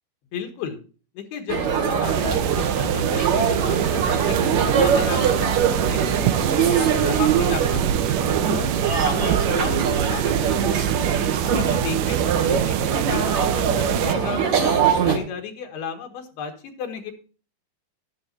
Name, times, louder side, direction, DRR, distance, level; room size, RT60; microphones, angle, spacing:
voice 1, 0.3-0.8 1.2-1.7 2.0-6.2 6.6-11.2 11.5-14.7 15.1-17.1, left 6 dB, 80° left, 5 dB, 3.7 m, -34 dB
sound 1, 1.5-15.2, right 6 dB, 50° right, 3.1 m, -22 dB
sound 2, 2.0-14.2, right 12 dB, 85° right, 1.9 m, -26 dB
13.5 x 12.5 x 2.7 m, 0.37 s
omnidirectional pair, 4.6 m